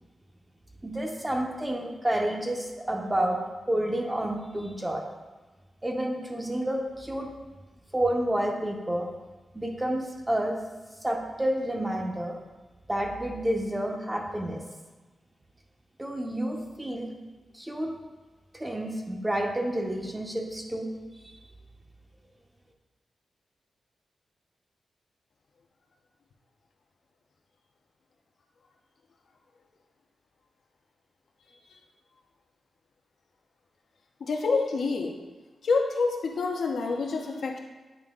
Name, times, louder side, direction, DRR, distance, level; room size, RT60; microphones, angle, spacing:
voice 1, 0.8-3.4 3.7-5.0 5.8-7.3 7.9-9.1 9.5-10.6 11.0-12.4 12.9-14.6 16.0-17.1 17.5-17.9 18.5-20.9 21.2-21.4, right 1 dB, 15° right, 1 dB, 0.7 m, -29 dB
voice 2, 34.2-35.1 35.6-37.6, left 4 dB, 70° left, 2 dB, 0.7 m, -27 dB
8.7 x 3.0 x 3.6 m, 1.2 s
wide cardioid pair, 140°, 0 cm